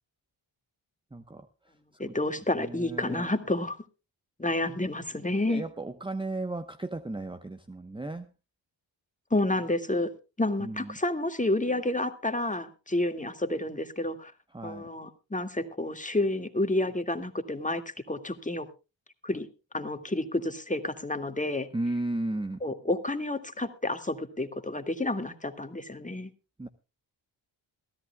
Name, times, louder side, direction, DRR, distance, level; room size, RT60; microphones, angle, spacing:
voice 1, 1.1-1.5 1.9-2.1 2.5-3.3 5.5-8.3 10.6-11.0 14.5-14.9 21.7-22.6 26.6-26.7, right 2 dB, 10° right, 10 dB, 1.0 m, -35 dB
voice 2, 2.0-3.8 4.4-5.7 9.3-10.1 10.4-14.3 14.6-18.7 19.2-19.5 19.7-21.7 22.6-26.3, left 2 dB, 15° left, 8 dB, 2.1 m, -30 dB
22.5 x 14.0 x 2.3 m, 0.30 s
cardioid pair, 65°, 48 cm